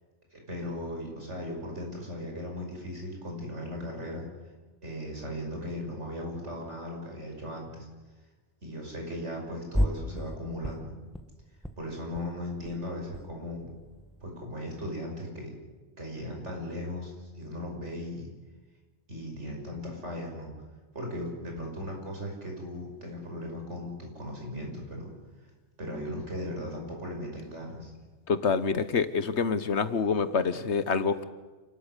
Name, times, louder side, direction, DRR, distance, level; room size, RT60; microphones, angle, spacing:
voice 1, 0.3-4.2 4.8-7.9 8.6-10.9 11.8-13.7 14.2-15.5 16.0-18.3 19.1-20.5 20.9-25.1 25.8-27.9, left 1 dB, 85° right, 1 dB, 6.1 m, -37 dB
sound 1, 9.7-10.4 10.6-11.3 11.6-11.7 12.0-12.2 12.5-13.3 13.6-14.5, equal, ahead, 1.5 m, -32 dB
voice 2, 28.3-31.2, left 5 dB, 75° left, 13 dB, 1.5 m, -26 dB
28.0 x 13.5 x 9.8 m, 1.3 s
omnidirectional pair, 1.2 m